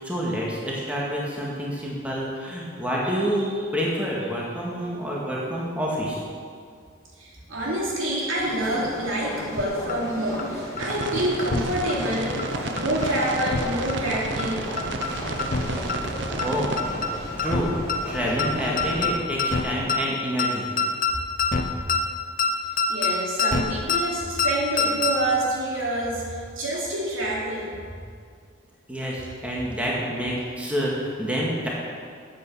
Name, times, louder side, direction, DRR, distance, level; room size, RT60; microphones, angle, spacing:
voice 1, 0.0-6.2 16.4-16.7 17.4-17.7 18.0-20.6 28.9-31.7, equal, 5° right, -5 dB, 1.9 m, -28 dB
voice 2, 7.2-14.6 22.9-27.8, right 1 dB, 85° right, -4 dB, 2.8 m, -27 dB
sound 1, 8.4-19.1, equal, 15° left, 2.3 m, -35 dB
sound 2, 9.6-9.7 9.9-10.0 10.4-10.5 10.8-11.1 11.4-11.6 11.9-12.0 12.4-12.5 12.8-13.1 13.4-13.6 13.9-14.0 14.4-14.5 14.8-15.1 15.4-15.6 15.9-16.0 16.4-16.5 16.8-17.1 17.4-17.6 17.9-18.0 18.4-18.5 18.8-19.1 19.4-19.6 19.9-20.0 20.4-20.5 20.8-21.1 21.4-21.6 21.9-22.0 22.4-22.5 22.8-23.1 23.4-23.6 23.9-24.0 24.4-24.5 24.8-25.1, left 5 dB, 45° left, 0.9 m, -24 dB
sound 3, 10.8-16.8, right 3 dB, 60° right, 0.7 m, -32 dB
9.2 x 8.7 x 7.1 m, 2.2 s
head